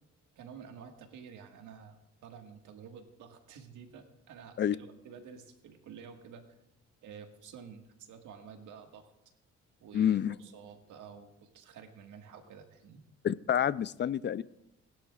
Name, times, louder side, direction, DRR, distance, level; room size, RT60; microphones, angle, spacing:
voice 1, 0.3-6.6 7.0-9.1 9.8-13.0, right 7 dB, 80° right, 4 dB, 1.7 m, -50 dB
voice 2, 9.9-10.4 13.2-14.4, left 9 dB, 35° left, 17 dB, 0.4 m, -28 dB
20.0 x 11.5 x 2.4 m, 0.82 s
cardioid pair, 90°, 30 cm